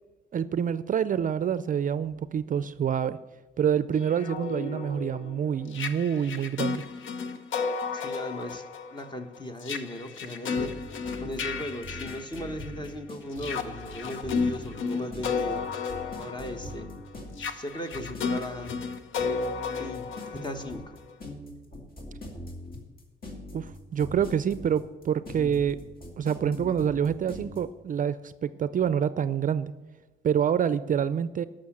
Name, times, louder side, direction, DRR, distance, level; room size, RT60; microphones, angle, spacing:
voice 1, 0.3-3.2 3.6-6.8 23.5-25.8 26.2-29.7 30.2-31.4, right 8 dB, 45° right, 14 dB, 0.4 m, -27 dB
sound 1, 4.0-12.9 13.3-21.1, left 5 dB, 75° left, 0.9 m, -33 dB
voice 2, 7.9-10.9 11.2-15.7 16.2-16.9 17.4-18.7 19.2-19.3 19.8-20.9, left 1 dB, 20° left, 8 dB, 1.2 m, -37 dB
sound 2, 10.5-27.6, left 1 dB, 45° left, 2.6 m, -42 dB
12.5 x 6.3 x 7.3 m, 1.2 s
cardioid pair, 90°, 20 cm